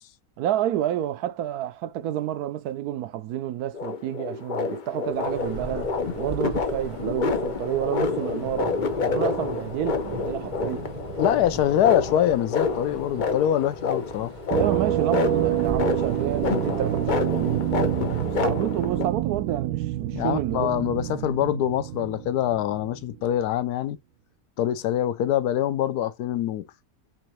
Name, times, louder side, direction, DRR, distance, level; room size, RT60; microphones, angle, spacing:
voice 1, 0.4-8.7 9.0-10.9 14.5-17.8 18.2-20.7, right 11 dB, 70° right, 1.0 m, -29 dB
sound 1, 3.7-19.0, left 4 dB, 50° left, 0.5 m, -29 dB
Thunder, 5.1-18.7, right 1 dB, 30° right, 0.6 m, -40 dB
voice 2, 11.2-14.3 20.1-24.0 24.6-26.6, left 11 dB, 75° left, 1.1 m, -24 dB
sound 2, 14.5-23.2, right 14 dB, 90° right, 1.3 m, -28 dB
4.5 x 3.8 x 3.1 m
omnidirectional pair, 1.8 m